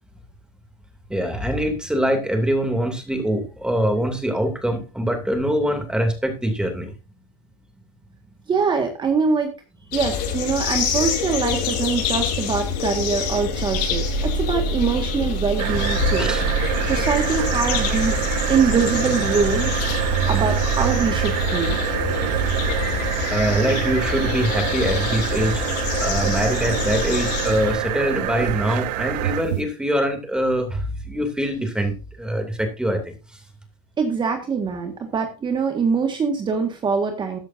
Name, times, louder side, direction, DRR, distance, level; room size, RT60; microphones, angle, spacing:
voice 1, 1.1-6.9 16.2-16.4 23.3-25.6 26.0-33.0, right 1 dB, 5° right, 5 dB, 2.7 m, -23 dB
voice 2, 8.5-9.5 9.9-16.3 16.9-18.2 18.5-19.8 20.1-21.8 34.0-37.4, right 5 dB, 25° right, 5 dB, 1.7 m, -23 dB
sound 1, 9.9-27.8, left 4 dB, 80° left, 6.8 m, -26 dB
sound 2, 15.6-29.6, right 13 dB, 85° right, 1.0 m, -26 dB
13.5 x 10.5 x 2.7 m, 0.31 s
supercardioid pair, 140°, 21 cm